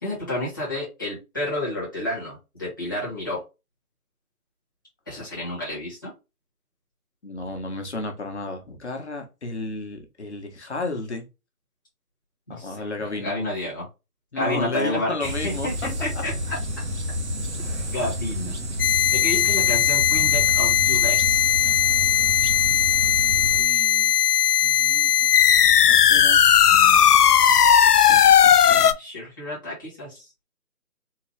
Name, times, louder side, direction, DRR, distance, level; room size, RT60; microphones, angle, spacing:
voice 1, 0.0-3.4 5.1-6.1 12.5-12.8 13.1-13.9 14.3-16.6 17.9-18.6 19.1-21.5 26.6-27.2 29.0-30.3, left 1 dB, 15° left, -7 dB, 1.1 m, -30 dB
voice 2, 7.2-11.2 12.5-13.4 14.3-15.9 16.1-16.2 23.6-24.2 24.6-25.3 25.9-26.4 28.1-29.0, left 2 dB, 45° left, 3 dB, 1.1 m, -33 dB
sound 1, 15.2-23.6, equal, 50° right, 0.8 m, -30 dB
sound 2, 18.8-28.9, left 9 dB, 90° left, 0.6 m, -17 dB
3.8 x 2.4 x 3.1 m, 0.26 s
figure-of-eight pair, 170°, 45 cm